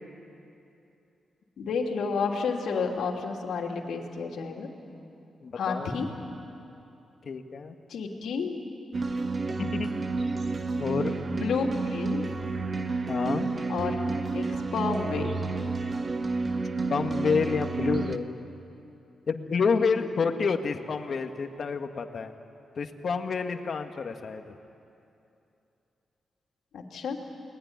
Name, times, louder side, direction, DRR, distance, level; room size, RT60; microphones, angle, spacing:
voice 1, 1.6-4.7 5.6-6.1 7.9-8.6 11.2-12.3 13.7-14.0 14.3-15.5 19.7-20.1 26.7-27.2, left 5 dB, 80° left, 2 dB, 3.1 m, -31 dB
voice 2, 5.4-5.9 7.2-7.7 9.6-9.9 10.8-11.2 13.1-13.5 16.9-18.4 19.3-22.3 22.8-24.5, left 5 dB, 55° left, 6 dB, 1.9 m, -29 dB
sound 1, 8.9-18.2, right 3 dB, 35° right, 1.4 m, -30 dB
29.0 x 20.5 x 9.8 m, 2.8 s
cardioid pair, 80°, 0 cm